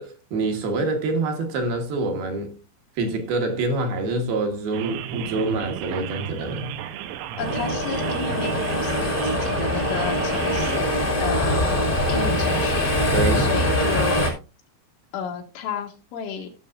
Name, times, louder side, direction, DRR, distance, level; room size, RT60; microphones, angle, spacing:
voice 1, 0.0-2.5 3.0-6.7 11.4-11.6 13.1-13.5, right 2 dB, 65° right, 2.8 m, -26 dB
sound 1, 4.7-10.8, right 10 dB, 85° right, 3.3 m, -33 dB
voice 2, 7.4-14.3 15.1-16.5, left 7 dB, 80° left, 4.0 m, -33 dB
sound 2, 7.4-14.3, left 1 dB, 25° left, 1.0 m, -23 dB
16.5 x 6.9 x 2.5 m
omnidirectional pair, 5.4 m